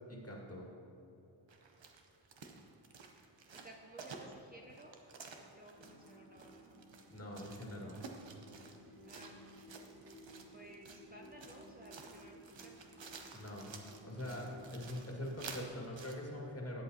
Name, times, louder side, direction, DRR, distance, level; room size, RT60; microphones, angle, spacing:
voice 1, 0.1-0.7 7.1-8.0 13.3-13.7 14.0-16.8, left 1 dB, 30° left, -1 dB, 2.0 m, -43 dB
sound 1, 1.5-16.1, right 4 dB, 65° right, 1.0 m, -53 dB
voice 2, 3.5-5.0 5.3-6.6 9.0-9.4 10.5-12.9, right 1 dB, 20° right, -1 dB, 0.8 m, -56 dB
sound 2, 5.7-14.9, equal, 50° right, 2.0 m, -57 dB
13.0 x 8.2 x 2.9 m, 2.8 s
cardioid pair, 50°, 48 cm